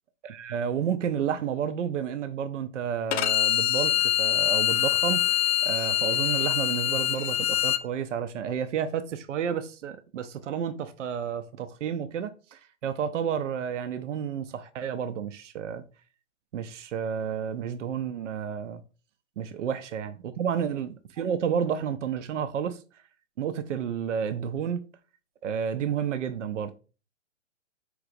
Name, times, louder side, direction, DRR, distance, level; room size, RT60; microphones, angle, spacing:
voice 1, 0.2-15.8 16.5-18.8 19.4-22.8 23.4-24.8 25.4-26.8, right 8 dB, 80° right, 0.6 m, -31 dB
Bowed string instrument, 3.1-7.8, left 12 dB, 65° left, 0.5 m, -24 dB
4.7 x 2.9 x 2.5 m
hypercardioid pair, 145°, 36 cm